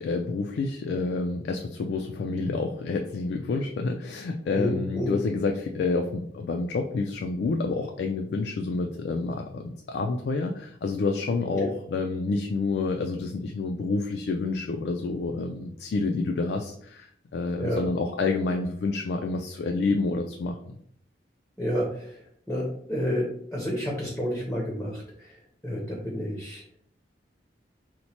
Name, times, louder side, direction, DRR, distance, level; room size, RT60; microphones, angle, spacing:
voice 1, 0.0-20.8, left 3 dB, 65° left, 3 dB, 0.3 m, -28 dB
voice 2, 4.5-5.2 11.5-11.7 17.6-17.8 21.6-26.6, equal, 5° left, -3 dB, 0.6 m, -30 dB
2.9 x 2.1 x 4.1 m, 0.67 s
head